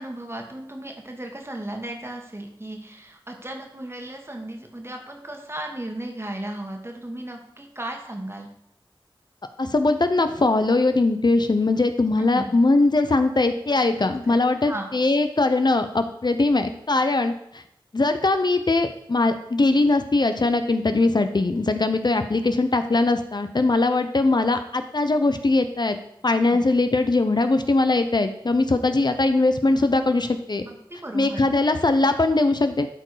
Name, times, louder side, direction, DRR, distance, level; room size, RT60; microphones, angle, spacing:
voice 1, 0.0-8.5 12.2-12.5 14.3-14.4 14.6-15.0 30.7-31.4, right 1 dB, 30° right, 2 dB, 1.6 m, -35 dB
voice 2, 9.6-17.6 17.9-26.0 26.2-30.6 31.1-32.9, left 2 dB, 50° left, 8 dB, 0.7 m, -21 dB
12.5 x 4.5 x 4.9 m, 0.73 s
wide cardioid pair, 60°, 9 cm